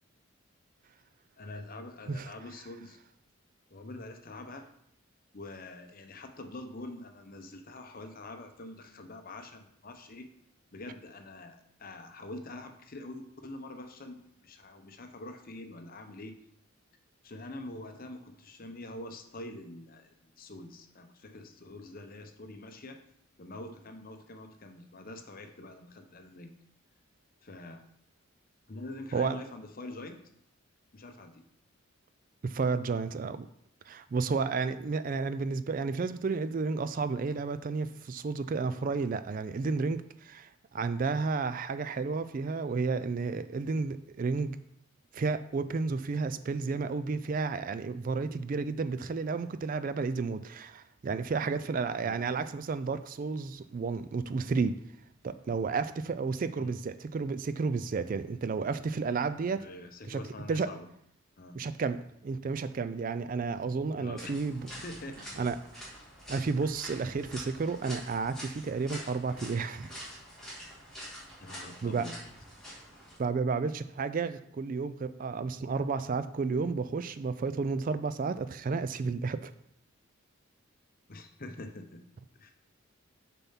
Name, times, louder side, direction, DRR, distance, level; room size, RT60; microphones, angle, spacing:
voice 1, 1.4-3.0 3.7-4.7 5.3-10.3 10.7-16.4 17.2-23.0 23.4-26.6 27.4-27.8 28.7-30.2 30.9-31.4 52.0-52.2 56.6-56.8 59.6-60.9 61.4-61.6 64.0-64.4 64.8-65.5 69.4-69.5 71.4-72.2 81.1-82.0 82.3-82.5, left 2 dB, 40° left, 0.7 m, -45 dB
voice 2, 32.4-33.5 33.9-44.6 45.1-54.8 55.2-59.7 60.1-60.2 60.5-60.7 61.5-64.7 65.4-65.9 66.3-69.9 71.8-72.1 73.2-79.5, right 4 dB, 40° right, 0.3 m, -32 dB
sound 1, 64.2-73.2, equal, ahead, 2.3 m, -46 dB
6.9 x 4.2 x 5.7 m
head